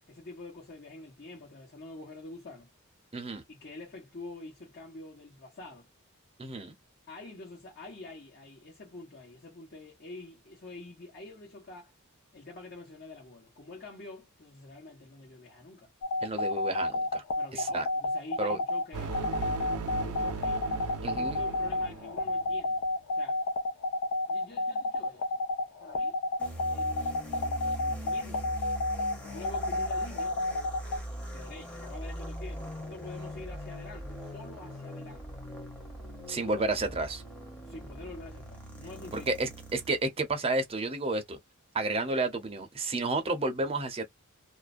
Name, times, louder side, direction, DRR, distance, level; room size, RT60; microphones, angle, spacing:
voice 1, 0.1-2.7 3.5-5.9 7.1-11.9 12.3-15.9 17.3-22.8 23.1-23.4 24.3-25.4 25.8-26.2 26.7-28.6 29.2-30.4 31.0-35.4 36.3-37.0 37.6-39.3, left 2 dB, 45° left, 1.1 m, -47 dB
voice 2, 3.1-3.4 6.4-6.7 16.2-17.2 17.5-17.9 18.4-18.6 21.0-21.4 36.3-37.2 39.1-41.4 41.7-44.0, right 2 dB, 25° right, 0.6 m, -31 dB
sound 1, 16.0-31.0, left 2 dB, 70° left, 0.5 m, -30 dB
sound 2, 18.9-22.5, right 4 dB, 70° right, 0.5 m, -37 dB
sound 3, 26.4-40.0, equal, 5° left, 0.9 m, -41 dB
2.4 x 2.1 x 2.5 m
head